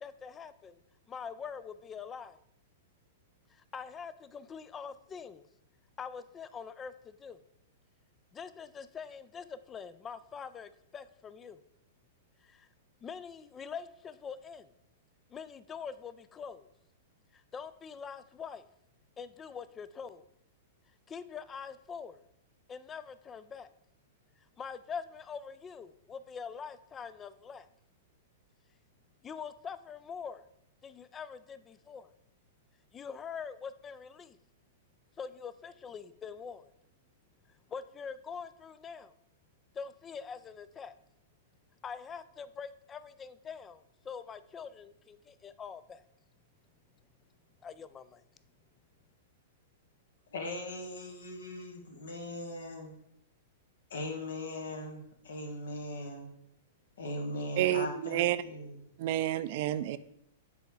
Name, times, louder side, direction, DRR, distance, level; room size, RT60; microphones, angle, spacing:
voice 1, 0.0-0.8 1.1-2.4 3.5-5.5 6.0-7.4 8.3-11.6 12.5-12.7 13.0-14.7 15.3-16.7 17.3-18.7 19.2-20.2 21.1-22.2 22.7-23.7 24.6-27.7 29.2-30.4 30.8-32.1 32.9-34.4 35.2-36.7 37.7-39.1 39.7-40.9 41.8-46.0 47.6-48.2, left 6 dB, 20° left, 0.3 m, -44 dB
voice 2, 50.3-52.9 53.9-56.3 57.0-58.8, left 1 dB, 75° left, 1.5 m, -39 dB
voice 3, 57.6-58.4 59.0-60.0, right 13 dB, 55° right, 0.4 m, -29 dB
6.9 x 3.9 x 4.6 m
hypercardioid pair, 105°, 0 cm